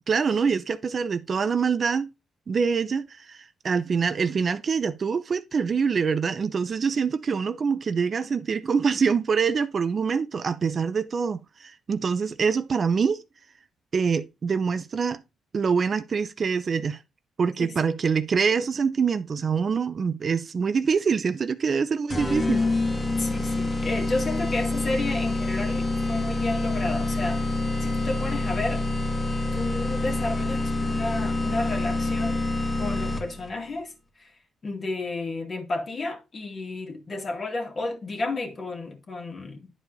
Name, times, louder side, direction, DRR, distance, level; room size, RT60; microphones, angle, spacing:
voice 1, 0.1-2.1 2.5-13.2 13.9-15.2 15.5-17.0 17.4-22.6, right 5 dB, 45° right, 0.6 m, -25 dB
sound 1, 22.1-33.5, left 2 dB, 25° left, 1.5 m, -26 dB
voice 2, 23.2-27.4 27.8-28.9 29.5-32.5 32.8-34.4 34.6-39.7, left 2 dB, 40° left, 2.3 m, -32 dB
10.0 x 4.5 x 4.1 m
cardioid pair, 90°, 0 cm